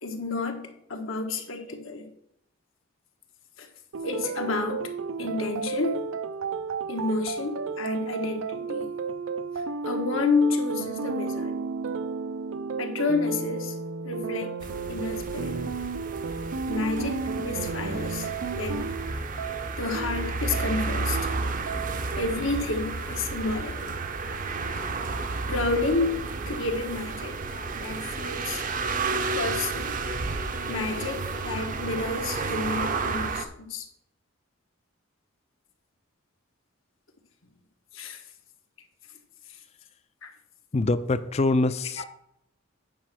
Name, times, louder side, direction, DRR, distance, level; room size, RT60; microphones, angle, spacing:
voice 1, 0.0-2.1 3.6-3.7 4.0-4.9 5.2-6.0 6.9-8.9 9.8-11.6 12.8-13.8 14.0-14.5 14.9-15.6 16.7-18.3 18.6-18.9 19.8-21.3 22.1-23.9 25.5-27.4 27.7-28.6 29.3-30.0 30.7-33.9 37.9-38.2 39.5-39.6 40.2-40.3, left 3 dB, 80° left, 4 dB, 1.3 m, -30 dB
sound 1, 3.9-22.2, right 5 dB, 85° right, 0.6 m, -33 dB
sound 2, 14.6-33.5, right 3 dB, 40° right, 0.6 m, -32 dB
voice 2, 40.7-42.0, left 2 dB, 30° left, 13 dB, 0.4 m, -24 dB
9.2 x 4.4 x 6.1 m, 0.77 s
head